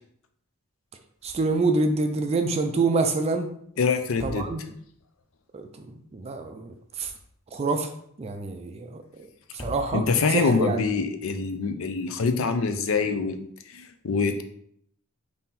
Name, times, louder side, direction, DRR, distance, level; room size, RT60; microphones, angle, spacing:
sound 1, 1.2-1.7 2.0-2.1 4.0-5.0 6.7-7.6 9.4-10.4, left 1 dB, 15° left, 0.6 m, -43 dB
voice 1, 1.2-3.5 4.2-4.6 5.5-5.7 6.1-7.1 7.5-7.9 8.2-9.0 9.6-10.0 10.3-10.9, right 3 dB, 30° right, 6 dB, 0.3 m, -26 dB
voice 2, 3.8-4.5 9.9-13.4 13.7-14.4, left 4 dB, 65° left, 7 dB, 0.5 m, -25 dB
3.7 x 2.7 x 4.1 m, 0.67 s
head